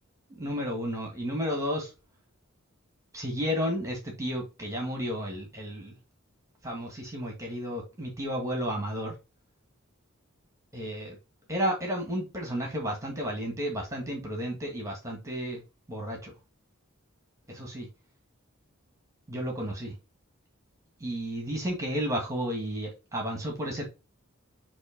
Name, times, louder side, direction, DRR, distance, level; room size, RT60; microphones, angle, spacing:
voice 1, 0.4-1.9 3.1-5.9 6.6-9.1 10.7-11.2 11.5-15.6 15.9-16.3 17.5-17.9 19.3-19.9 21.0-23.8, equal, 15° right, 1.9 m, -32 dB
8.1 x 3.1 x 5.1 m
head